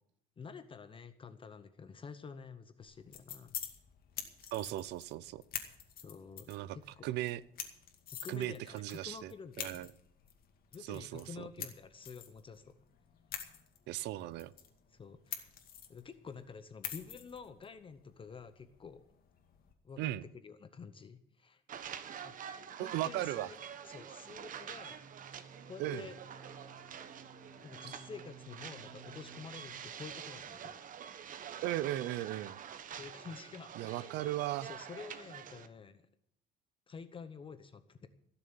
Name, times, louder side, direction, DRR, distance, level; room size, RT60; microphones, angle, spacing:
voice 1, 0.4-3.5 6.0-7.1 8.1-9.9 10.7-12.8 14.9-15.5 15.9-19.1 19.8-20.1 20.4-21.6 22.2-22.4 22.8-23.6 23.8-25.1 25.6-26.2 27.6-30.8 33.0-34.1 34.6-36.0 36.9-38.1, left 5 dB, 30° left, 0.9 m, -49 dB
sound 1, 2.8-19.7, left 9 dB, 60° left, 2.3 m, -48 dB
voice 2, 4.5-5.4 6.5-6.8 7.0-7.4 8.3-9.3 9.6-9.9 10.8-11.5 13.9-14.5 20.0-20.2 22.8-23.5 25.8-26.0 31.6-32.6 33.8-34.7, right 14 dB, 85° right, 0.7 m, -37 dB
sound 2, 21.7-35.7, right 8 dB, 50° right, 1.2 m, -47 dB
sound 3, 22.8-29.8, right 4 dB, 20° right, 2.2 m, -57 dB
16.0 x 7.0 x 8.7 m
cardioid pair, 110°, 17 cm